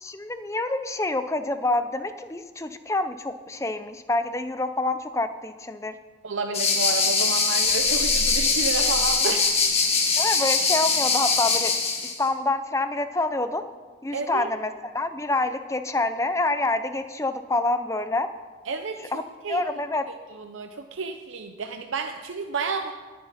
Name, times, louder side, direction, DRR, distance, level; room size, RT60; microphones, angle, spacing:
voice 1, 0.0-5.9 10.2-11.7 12.2-13.6 14.0-18.3 19.1-19.2 19.5-20.0, left 2 dB, 15° left, 10 dB, 0.5 m, -27 dB
voice 2, 6.2-9.5 10.1-10.3 14.1-14.5 18.7-19.6 20.4-22.9, right 4 dB, 80° right, 5 dB, 0.7 m, -31 dB
sound 1, 6.5-12.1, left 4 dB, 30° left, 1.7 m, -22 dB
sound 2, 7.6-10.0, equal, 25° right, 1.4 m, -36 dB
18.0 x 9.6 x 4.2 m, 1.4 s
head